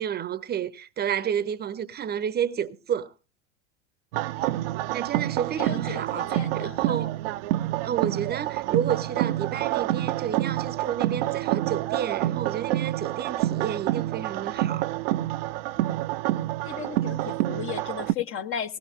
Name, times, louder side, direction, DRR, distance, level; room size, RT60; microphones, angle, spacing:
voice 1, 0.0-3.1 4.9-7.2 7.8-14.9, right 9 dB, 25° right, 0.9 m, -30 dB
sound 1, 4.1-18.1, right 15 dB, 50° right, 0.7 m, -28 dB
voice 2, 5.6-7.0 16.6-18.8, left 8 dB, 35° left, 1.1 m, -35 dB
19.0 x 17.5 x 2.5 m
figure-of-eight pair, 80°, 37 cm